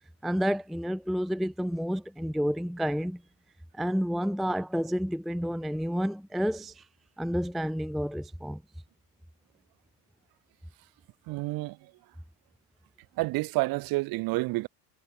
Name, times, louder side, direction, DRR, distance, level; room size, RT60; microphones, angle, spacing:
voice 1, 0.2-3.2 3.7-6.9 7.2-8.6, equal, ahead, 0.5 m, -30 dB
voice 2, 11.3-11.8 13.2-14.7, right 21 dB, 45° right, 2.0 m, -29 dB
supercardioid pair, 120°, 47 cm